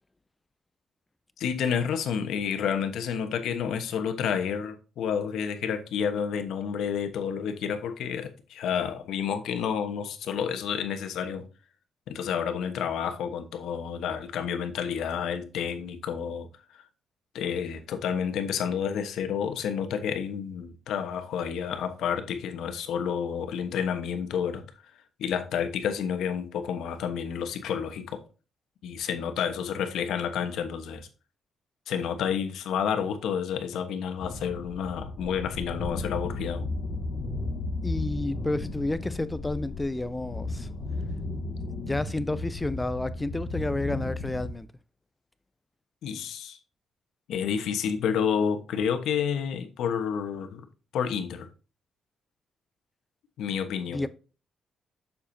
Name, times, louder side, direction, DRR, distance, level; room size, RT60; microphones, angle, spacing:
voice 1, 1.4-11.4 12.1-16.5 16.7-16.8 17.3-24.6 25.2-28.2 28.8-31.1 31.9-36.7 46.0-46.6 47.3-50.6 50.9-51.5 53.4-54.1, left 7 dB, 85° left, 1.1 m, -30 dB
sound 1, 34.2-44.6, left 2 dB, 50° left, 1.2 m, -34 dB
voice 2, 37.8-40.7 41.8-44.7 53.9-54.1, left 2 dB, 10° left, 0.4 m, -30 dB
7.2 x 7.0 x 2.7 m
cardioid pair, 150°, 0 cm